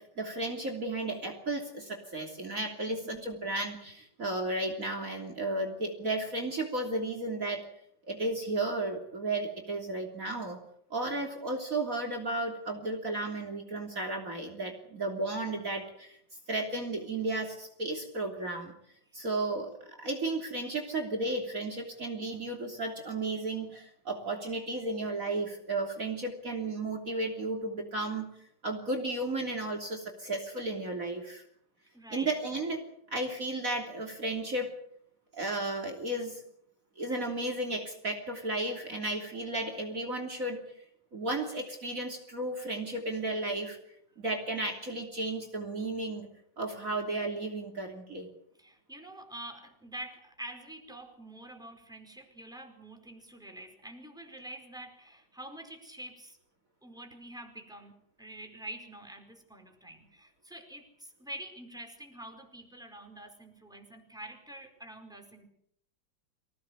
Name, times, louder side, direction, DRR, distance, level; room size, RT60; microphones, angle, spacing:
voice 1, 0.0-7.7 8.1-10.6 10.9-16.2 16.5-18.7 19.1-28.3 28.6-31.4 32.1-34.7 35.3-36.4 37.0-40.6 41.1-43.8 44.2-46.3 46.6-48.3, right 2 dB, 45° right, 4 dB, 3.6 m, -34 dB
voice 2, 2.9-3.3 31.9-32.4 48.6-56.4 56.8-65.5, right 1 dB, ahead, 4 dB, 4.7 m, -46 dB
25.5 x 17.5 x 8.1 m, 0.70 s
omnidirectional pair, 2.1 m